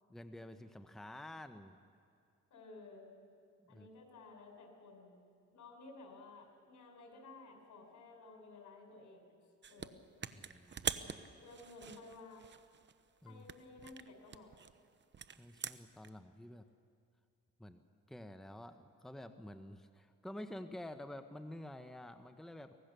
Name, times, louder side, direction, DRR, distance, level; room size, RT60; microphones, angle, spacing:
voice 1, 0.1-1.8 3.6-3.9 10.3-11.3 13.2-13.4 15.4-16.6 17.6-17.8 18.1-22.7, left 1 dB, ahead, 8 dB, 0.9 m, -50 dB
voice 2, 2.5-3.1 3.7-5.3 5.5-9.3 9.7-10.0 11.4-12.4 13.2-14.5, left 3 dB, 70° left, 3 dB, 4.9 m, -55 dB
sound 1, 9.6-9.9 10.2-13.0 13.4-16.1, right 7 dB, 40° right, 0.9 m, -44 dB
24.0 x 18.0 x 6.8 m, 2.4 s
cardioid pair, 90°, 30 cm